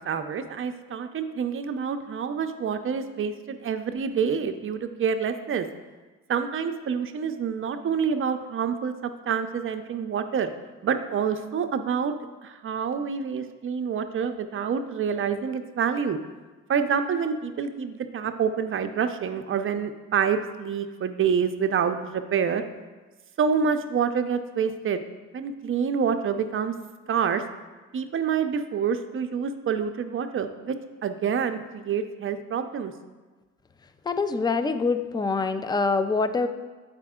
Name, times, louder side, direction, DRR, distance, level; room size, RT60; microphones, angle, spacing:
voice 1, 0.0-5.7 6.3-10.5 10.8-12.1 12.4-16.2 16.7-22.6 23.4-25.0 25.3-26.7 27.1-27.4 27.9-30.7 31.0-32.9, right 6 dB, 45° right, 8 dB, 0.6 m, -27 dB
voice 2, 34.1-36.5, left 4 dB, 15° left, 10 dB, 0.4 m, -25 dB
7.4 x 5.0 x 3.6 m, 1.3 s
cardioid pair, 90°, 30 cm